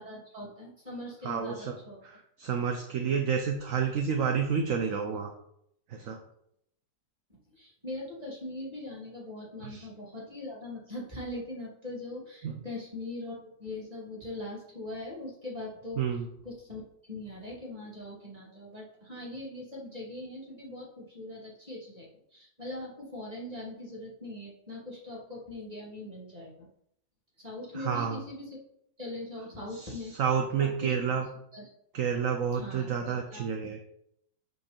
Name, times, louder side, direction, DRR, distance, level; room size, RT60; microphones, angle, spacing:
voice 1, 0.0-2.0 7.6-16.0 16.4-26.7 27.4-28.4 29.0-30.1 30.6-30.9 31.5-31.7 32.5-33.5, left 1 dB, 20° right, -3 dB, 2.8 m, -41 dB
voice 2, 1.2-1.8 2.0-5.3 5.9-6.2 9.6-9.9 12.4-12.7 16.0-16.3 27.7-28.2 29.7-31.3 31.9-33.8, right 7 dB, 55° right, 4 dB, 1.1 m, -30 dB
7.7 x 6.6 x 4.5 m, 0.74 s
omnidirectional pair, 1.9 m